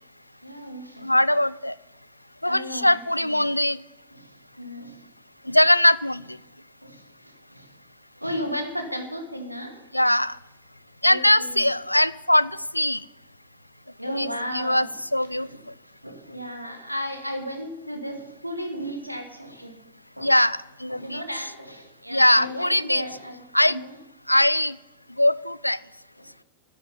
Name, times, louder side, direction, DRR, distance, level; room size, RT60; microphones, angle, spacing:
voice 1, 0.4-1.1 2.4-3.5 4.1-5.1 5.4-5.6 6.8-7.8 8.2-9.7 11.0-11.7 14.0-15.0 15.4-15.6 16.0-19.8 20.2-20.3 20.9-24.0 26.2-26.3, equal, 90° right, 5 dB, 1.7 m, -35 dB
voice 2, 1.0-1.7 2.4-3.8 5.5-6.4 9.9-10.4 11.0-13.1 14.1-14.9 15.1-15.5 20.2-21.2 22.1-23.0 23.5-23.8 24.3-24.8 25.2-25.8, left 1 dB, 85° left, 20 dB, 0.3 m, -21 dB
10.5 x 8.1 x 9.5 m, 1.0 s
figure-of-eight pair, 90°, 0 cm